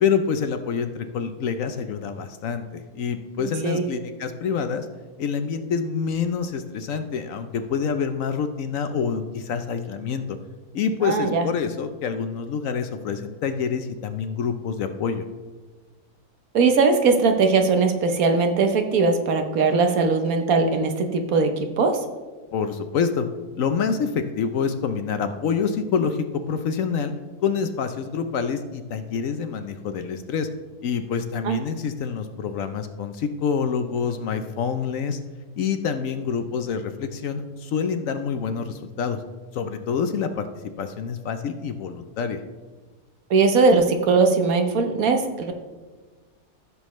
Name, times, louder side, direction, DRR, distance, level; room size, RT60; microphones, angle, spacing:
voice 1, 0.0-4.9 5.2-10.4 10.7-15.2 22.5-23.3 23.5-27.1 27.4-30.5 30.8-35.2 35.6-39.2 39.5-40.5 40.8-42.4, left 6 dB, 65° left, 8 dB, 0.9 m, -27 dB
voice 2, 3.4-3.9 11.0-11.5 16.5-21.5 21.8-22.0 31.4-31.6 43.3-45.5, right 4 dB, 65° right, 6 dB, 1.3 m, -20 dB
14.5 x 7.0 x 3.1 m, 1.3 s
omnidirectional pair, 1.7 m